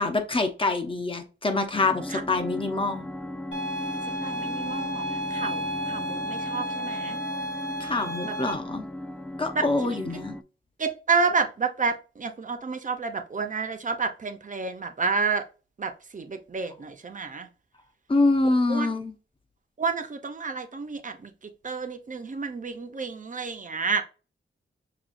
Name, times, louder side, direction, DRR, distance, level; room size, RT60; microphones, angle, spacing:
voice 1, 0.0-3.0 7.8-8.9 9.4-10.3 18.1-19.1, left 3 dB, 25° left, 7 dB, 0.8 m, -25 dB
sound 1, 1.7-10.4, left 1 dB, 5° left, 0.3 m, -37 dB
sound 2, 3.5-8.5, equal, 65° left, 1.4 m, -32 dB
voice 2, 4.2-5.0 5.3-7.2 8.3-8.4 9.5-10.0 10.8-15.4 15.8-17.5 18.7-18.9 19.8-21.3 21.6-24.0, right 4 dB, 40° right, 7 dB, 0.7 m, -30 dB
6.0 x 2.4 x 2.5 m, 0.33 s
wide cardioid pair, 105°, 21 cm